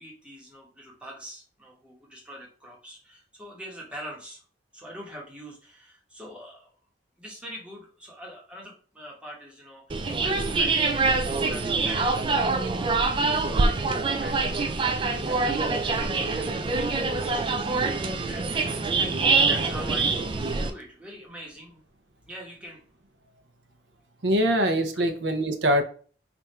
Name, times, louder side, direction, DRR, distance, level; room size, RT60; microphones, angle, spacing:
voice 1, 0.0-4.4 4.7-6.7 7.2-12.2 13.1-14.9 15.3-21.8 22.3-22.9 24.9-25.0, equal, 5° right, -3 dB, 1.1 m, -44 dB
sound 1, 9.9-20.7, right 3 dB, 25° right, 0.3 m, -25 dB
voice 2, 24.2-25.8, equal, 75° right, 7 dB, 0.7 m, -23 dB
3.5 x 2.5 x 4.2 m, 0.41 s
head